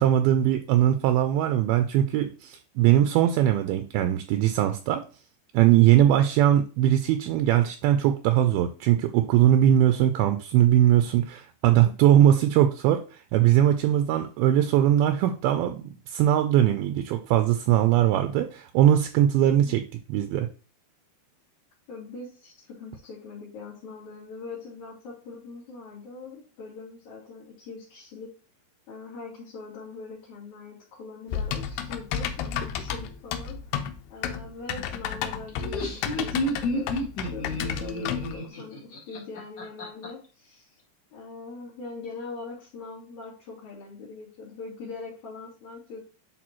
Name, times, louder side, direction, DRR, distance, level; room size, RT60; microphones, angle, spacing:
voice 1, 0.0-5.0 5.5-19.8 20.1-20.5, right 11 dB, 80° right, 8 dB, 2.4 m, -21 dB
voice 2, 5.9-6.3 19.4-19.8 21.9-28.3 28.9-33.8 34.1-36.9 37.2-40.8 41.1-46.0, left 4 dB, 50° left, -10 dB, 3.6 m, -42 dB
Typing, 31.3-38.4, left 8 dB, 85° left, 2.7 m, -32 dB
Laughter, 35.5-40.1, left 1 dB, 35° left, 1.8 m, -31 dB
10.0 x 4.4 x 3.1 m, 0.36 s
omnidirectional pair, 4.5 m